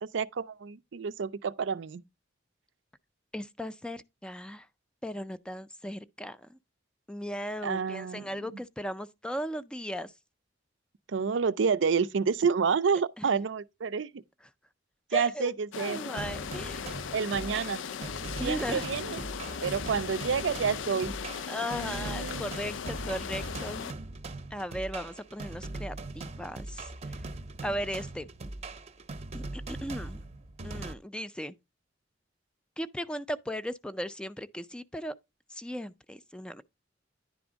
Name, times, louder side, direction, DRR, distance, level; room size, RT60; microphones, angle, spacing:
voice 1, 0.0-2.0 7.6-8.3 11.1-14.1 15.1-16.0 17.1-17.8 18.4-19.2 19.6-21.1 21.6-22.4, right 6 dB, 75° right, 0.5 m, -29 dB
voice 2, 3.3-4.7 5.0-6.6 7.1-10.1 13.2-13.4 15.1-15.5 15.8-16.9 18.4-18.9 21.5-23.9 24.5-27.2 27.6-28.3 29.3-30.2 30.6-31.6 32.8-35.2 35.5-36.6, equal, 5° left, 0.4 m, -37 dB
sound 1, 15.7-23.9, left 7 dB, 90° left, 0.4 m, -38 dB
sound 2, 16.2-30.9, right 2 dB, 35° right, 0.7 m, -40 dB
10.0 x 3.5 x 5.1 m
head